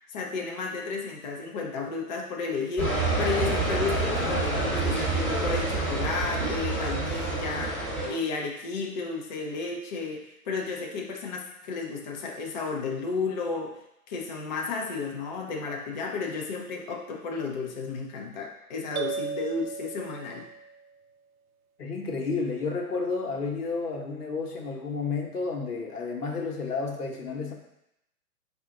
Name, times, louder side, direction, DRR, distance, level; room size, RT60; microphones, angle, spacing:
voice 1, 0.1-13.8 14.1-20.5, left 4 dB, 35° left, 0 dB, 0.4 m, -33 dB
sound 1, 2.8-8.1, right 2 dB, ahead, 0.9 m, -27 dB
sound 2, 19.0-20.9, right 6 dB, 70° right, 0.5 m, -35 dB
voice 2, 21.8-27.5, left 4 dB, 85° left, 1 dB, 0.9 m, -31 dB
4.2 x 2.3 x 3.7 m, 0.84 s
hypercardioid pair, 125°, 45 cm